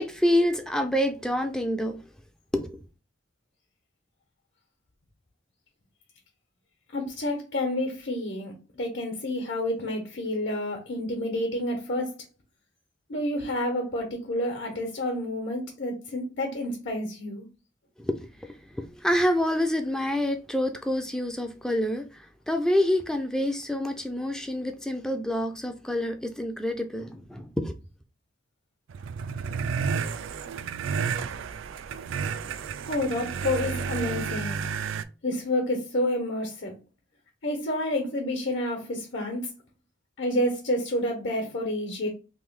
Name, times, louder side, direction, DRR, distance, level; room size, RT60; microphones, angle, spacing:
voice 1, 0.0-2.0 2.5-2.8 18.0-18.1 18.4-18.5 18.7-27.7, left 1 dB, 5° left, 0.3 m, -27 dB
voice 2, 6.9-12.2 13.1-17.5 32.9-34.6 35.2-36.7 37.4-39.5 40.2-42.1, left 1 dB, 70° left, 1.0 m, -29 dB
sound 1, 28.9-35.0, right 6 dB, 85° right, 0.4 m, -31 dB
3.2 x 2.7 x 3.6 m
head